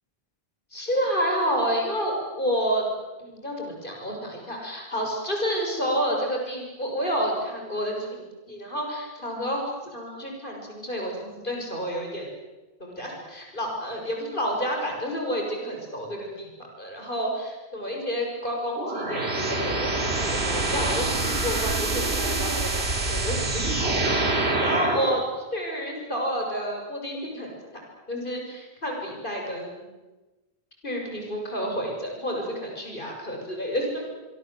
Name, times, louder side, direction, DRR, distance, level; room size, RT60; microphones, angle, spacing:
voice 1, 0.7-2.9 3.2-12.3 12.8-16.5 16.8-27.5 28.1-29.9 30.8-34.0, equal, 55° left, 1 dB, 6.7 m, -30 dB
sound 1, 18.7-25.2, right 2 dB, 85° right, 3.7 m, -26 dB
26.0 x 22.0 x 7.9 m, 1.2 s
omnidirectional pair, 1.0 m